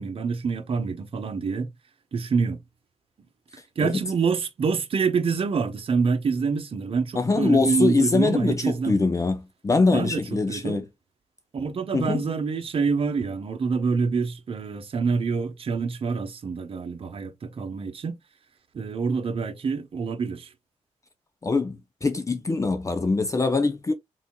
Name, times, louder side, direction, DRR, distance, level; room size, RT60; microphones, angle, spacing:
voice 1, 0.0-1.7 2.1-2.6 3.8-9.1 9.9-10.2 10.5-10.8 11.5-18.2 18.7-20.5, right 5 dB, 50° right, 1.1 m, -26 dB
voice 2, 7.1-10.9 11.9-12.2 21.4-23.9, left 3 dB, 25° left, 0.7 m, -23 dB
4.2 x 4.2 x 2.3 m
cardioid pair, 95°, 12 cm